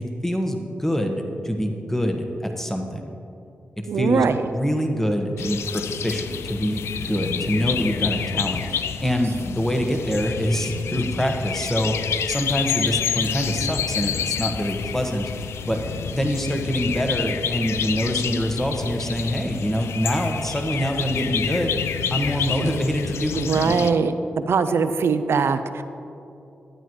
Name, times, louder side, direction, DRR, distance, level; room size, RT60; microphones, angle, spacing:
voice 1, 0.0-3.0 3.8-4.2 4.5-15.3 15.7-15.8 16.1-21.8 22.1-23.8, equal, 10° left, 4 dB, 1.3 m, -25 dB
voice 2, 3.9-4.5 23.3-24.1 24.5-25.8, right 5 dB, 70° right, 10 dB, 0.5 m, -21 dB
sound 1, 5.4-23.9, left 8 dB, 80° left, 0.3 m, -28 dB
12.0 x 8.9 x 3.1 m, 2.7 s
supercardioid pair, 40°, 4 cm